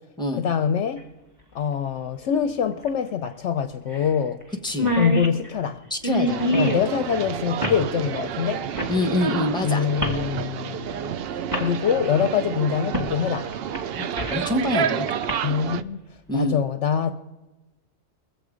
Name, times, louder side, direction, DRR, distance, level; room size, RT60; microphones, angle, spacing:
voice 1, 0.4-1.0 1.5-4.4 5.0-5.8 6.5-8.6 9.6-11.1 11.6-13.5 15.4-16.0 16.3-17.1, left 8 dB, 65° left, 9 dB, 0.8 m, -24 dB
sound 1, 1.0-1.1 2.8-2.9 3.3-3.4 3.9-4.1 4.4-4.5 4.7-6.9 7.6-7.8 8.8-9.0 10.0-10.2 11.0-11.1 11.5-11.7 12.9-13.1 13.5-14.5 15.1-15.3, equal, 15° right, 1.6 m, -25 dB
voice 2, 4.6-4.9 5.9-6.8 8.9-9.9 14.0-15.1 16.3-16.6, left 1 dB, 5° left, 4 dB, 0.8 m, -26 dB
sound 2, 6.3-15.8, right 8 dB, 65° right, 0.6 m, -30 dB
22.0 x 7.6 x 5.0 m, 1.1 s
omnidirectional pair, 1.4 m